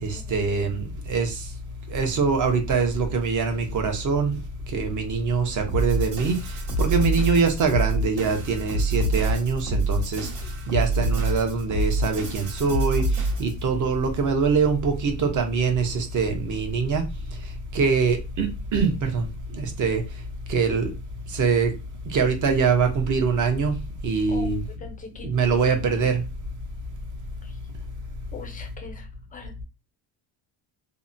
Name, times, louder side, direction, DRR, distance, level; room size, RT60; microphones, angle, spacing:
voice 1, 0.0-1.5 1.9-4.4 4.7-17.1 17.7-20.0 20.5-20.9 21.3-21.7 22.1-24.6 25.2-26.2, right 5 dB, 40° right, 0.6 m, -24 dB
sound 1, 5.7-13.6, right 1 dB, 75° right, 1.0 m, -26 dB
voice 2, 24.8-25.6 28.3-29.1 29.3-29.6, left 4 dB, 20° left, 0.4 m, -41 dB
2.7 x 2.1 x 2.5 m
cardioid pair, 150°, 47 cm